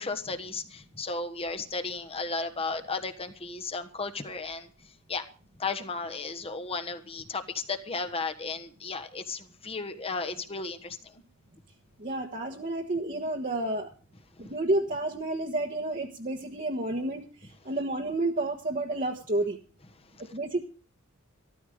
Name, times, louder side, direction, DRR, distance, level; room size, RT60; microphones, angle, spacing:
voice 1, 0.0-5.2 5.6-11.2 14.4-14.5 20.1-20.2, left 4 dB, 25° left, 1.3 m, -35 dB
voice 2, 12.0-13.9 14.4-19.6 20.2-20.6, right 2 dB, 40° right, 1.3 m, -30 dB
14.0 x 14.0 x 5.0 m
head